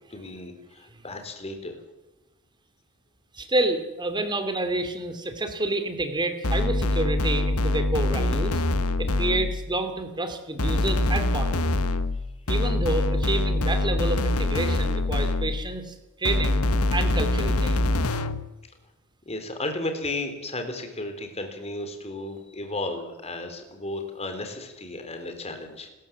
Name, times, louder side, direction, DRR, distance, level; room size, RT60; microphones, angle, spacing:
voice 1, 0.1-1.7 19.3-25.9, left 2 dB, 30° left, 6 dB, 3.8 m, -34 dB
voice 2, 3.3-8.6 9.0-11.8 12.5-16.6 16.9-17.9, right 2 dB, 20° right, 8 dB, 2.7 m, -29 dB
sound 1, 6.4-9.7 10.6-15.7 16.3-18.5, left 2 dB, 75° left, 1.2 m, -24 dB
29.0 x 14.0 x 7.5 m, 1.0 s
head